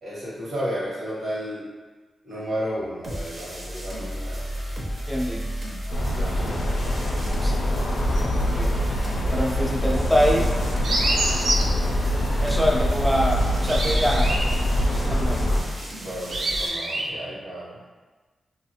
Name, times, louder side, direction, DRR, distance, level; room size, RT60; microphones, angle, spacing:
voice 1, 0.0-1.6 2.2-4.4 6.1-6.6 12.4-12.6 16.0-17.8, equal, 70° right, -8 dB, 1.2 m, -32 dB
sound 1, 3.0-16.7, equal, 45° right, 0.7 m, -32 dB
voice 2, 5.1-5.5 7.4-7.6 8.2-8.8 9.3-10.5 12.4-14.4 15.1-15.5, equal, ahead, -1 dB, 0.5 m, -25 dB
sound 2, 5.9-15.6, equal, 90° left, 0.4 m, -24 dB
sound 3, 10.8-11.7 13.0-17.1, right 1 dB, 90° right, 0.4 m, -28 dB
2.6 x 2.4 x 2.8 m, 1.3 s
cardioid pair, 80°, 0 cm